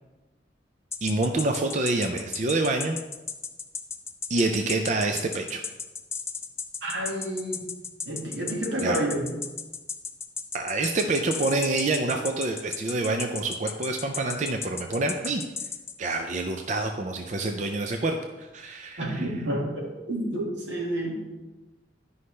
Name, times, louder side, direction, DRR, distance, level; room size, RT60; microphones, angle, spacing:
sound 1, 0.9-15.9, left 6 dB, 15° left, 0.4 m, -34 dB
voice 1, 1.0-3.0 4.3-5.6 8.8-9.0 10.5-15.4 16.0-19.0, right 2 dB, 40° right, 4 dB, 0.5 m, -27 dB
voice 2, 6.8-7.7 8.1-9.3 19.0-21.2, right 1 dB, 85° right, -2 dB, 1.9 m, -29 dB
11.5 x 5.5 x 3.2 m, 1.1 s
head